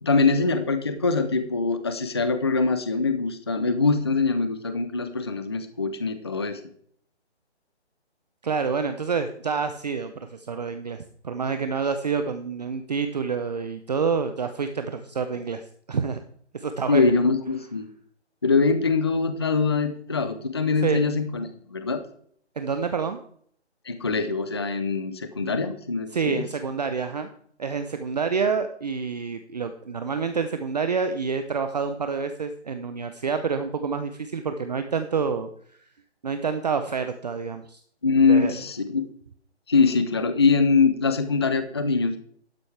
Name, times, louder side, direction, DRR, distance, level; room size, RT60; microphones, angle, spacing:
voice 1, 0.0-6.6 16.9-17.9 18.4-22.0 23.9-26.5 38.0-39.1 39.7-42.2, left 4 dB, 25° left, 10 dB, 0.5 m, -23 dB
voice 2, 8.4-16.2 16.5-17.0 20.8-21.0 22.6-23.2 26.1-27.3 27.6-35.5 36.2-37.8 38.3-38.5, right 5 dB, 40° right, 8 dB, 0.7 m, -28 dB
12.0 x 10.5 x 3.3 m, 0.62 s
hypercardioid pair, 165°, 34 cm